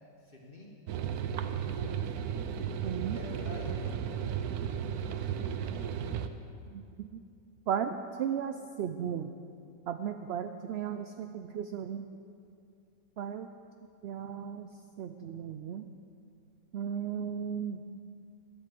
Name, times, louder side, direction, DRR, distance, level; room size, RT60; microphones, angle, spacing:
voice 1, 0.2-0.7 1.4-2.1 3.1-4.0, left 2 dB, 35° left, -2 dB, 2.0 m, -47 dB
sound 1, 0.9-6.3, right 8 dB, 85° right, 1.2 m, -34 dB
voice 2, 2.8-3.2 6.7-7.1 7.7-9.3 9.9-12.1 13.2-13.5 14.0-14.7 15.0-15.9 16.7-17.8, right 8 dB, 70° right, 9 dB, 0.6 m, -35 dB
11.0 x 9.9 x 7.6 m, 2.4 s
omnidirectional pair, 1.6 m